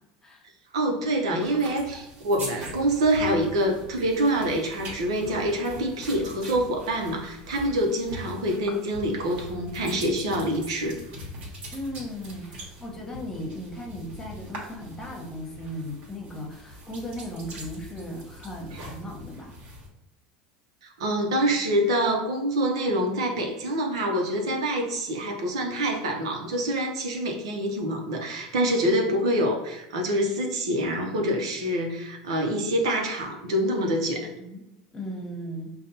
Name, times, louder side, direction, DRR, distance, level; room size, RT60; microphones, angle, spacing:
voice 1, 0.7-11.0 18.7-18.8 20.8-34.3, right 1 dB, 90° right, 2 dB, 0.7 m, -26 dB
sound 1, 1.4-19.9, right 1 dB, 60° right, 1.2 m, -42 dB
voice 2, 11.7-19.5 34.4-35.7, equal, 15° left, 0 dB, 1.1 m, -37 dB
5.1 x 2.3 x 2.7 m, 0.92 s
supercardioid pair, 100°, 3 cm